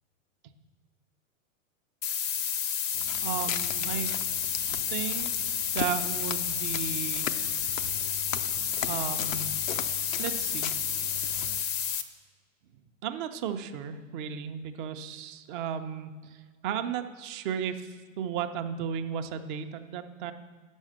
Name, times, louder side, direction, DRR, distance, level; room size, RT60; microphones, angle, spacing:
sound 1, 2.0-12.0, left 8 dB, 25° left, 0.6 m, -30 dB
Walk footsteps, 2.9-11.6, left 9 dB, 80° left, 0.6 m, -39 dB
voice 1, 3.2-4.1 4.9-5.3 5.7-7.3 8.9-9.5 10.2-10.7 13.0-20.3, right 8 dB, 40° right, 8 dB, 0.7 m, -34 dB
8.2 x 6.3 x 6.5 m, 1.5 s
hypercardioid pair, 115°, 40 cm